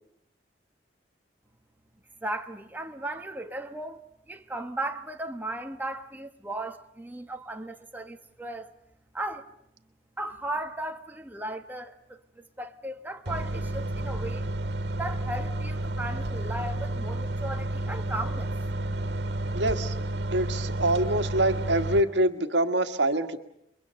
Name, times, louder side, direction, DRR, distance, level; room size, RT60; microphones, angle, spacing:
voice 1, 2.2-4.0 4.3-8.7 9.1-9.5 10.2-14.5 15.0-18.6, right 1 dB, 10° right, 1.3 m, -36 dB
sound 1, 13.3-22.0, right 1 dB, 70° right, 2.4 m, -31 dB
voice 2, 19.5-20.0 20.3-23.4, right 1 dB, 85° right, 1.7 m, -25 dB
29.5 x 23.0 x 6.5 m
head